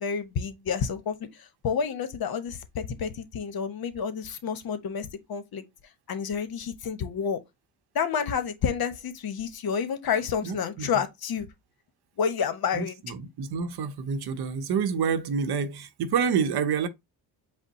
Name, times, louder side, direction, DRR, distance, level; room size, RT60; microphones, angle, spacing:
voice 1, 0.0-5.6 6.1-7.4 7.9-11.5 12.2-13.0, left 7 dB, 55° left, 0.9 m, -29 dB
voice 2, 10.4-10.9 12.8-16.9, right 6 dB, 60° right, 0.8 m, -28 dB
5.2 x 2.1 x 4.0 m
cardioid pair, 75°, 44 cm